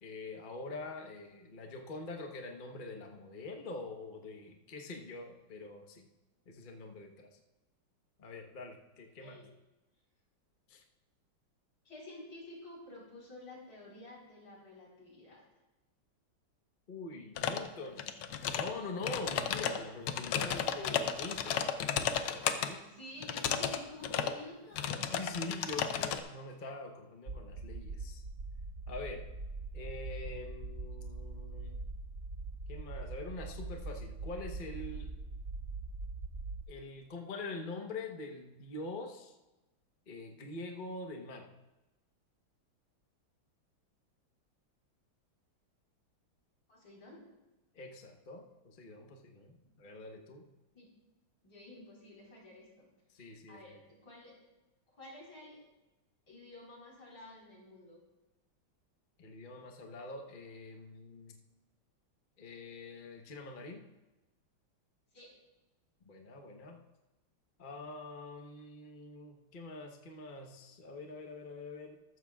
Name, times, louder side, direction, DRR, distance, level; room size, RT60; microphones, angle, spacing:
voice 1, 0.0-6.0 6.5-7.3 8.2-9.4 10.7-10.8 16.9-18.1 18.5-21.6 22.6-22.8 25.1-28.2 28.9-29.3 29.7-31.8 32.7-35.1 36.7-39.3 40.1-41.5 47.7-50.4 53.1-53.6 59.2-61.4 62.4-63.8 66.0-66.8 67.6-72.0, left 3 dB, 35° left, 2 dB, 0.8 m, -44 dB
voice 2, 9.1-9.5 11.8-15.4 22.7-25.1 46.7-47.2 50.7-50.9 51.4-52.9 53.1-54.4 54.9-55.6 56.3-58.0 65.1-65.3, left 2 dB, 60° left, -4 dB, 4.7 m, -51 dB
sound 1, 17.4-17.7 18.0-18.7 19.0-22.7 23.2-23.8 24.0-24.4 24.8-26.2, left 8 dB, 85° left, 1.6 m, -33 dB
sound 2, 27.3-36.6, right 3 dB, 75° right, 0.4 m, -42 dB
14.0 x 13.0 x 2.4 m, 1.0 s
omnidirectional pair, 2.3 m